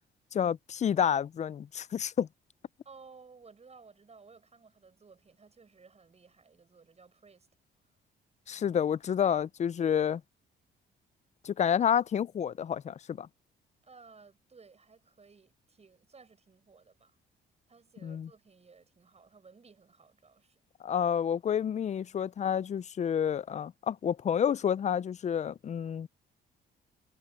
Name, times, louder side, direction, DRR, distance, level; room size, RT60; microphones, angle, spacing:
voice 1, 0.3-2.3 8.5-10.2 11.4-13.3 18.0-18.3 20.8-26.1, left 8 dB, 35° left, 0.4 m, -29 dB
voice 2, 2.8-7.5 7.8-7.9 13.8-17.2 17.7-20.7, right 4 dB, 35° right, 6.2 m, -57 dB
cardioid pair, 90°, 20 cm